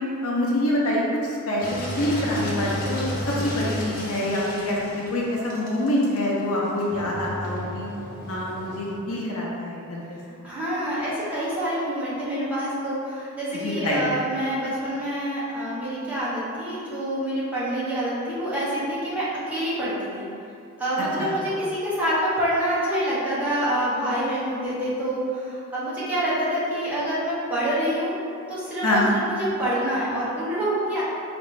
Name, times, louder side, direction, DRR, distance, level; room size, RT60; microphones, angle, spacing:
voice 1, 0.2-7.9 8.3-10.2 13.5-14.1 21.2-21.3 28.8-29.1, left 1 dB, 70° left, -4 dB, 0.8 m, -26 dB
Engine, 1.6-9.0, left 1 dB, 40° left, 0.8 m, -33 dB
voice 2, 10.4-20.3 20.8-28.1 28.5-31.0, right 1 dB, 5° right, -10 dB, 1.0 m, -26 dB
5.1 x 2.8 x 3.3 m, 2.6 s
head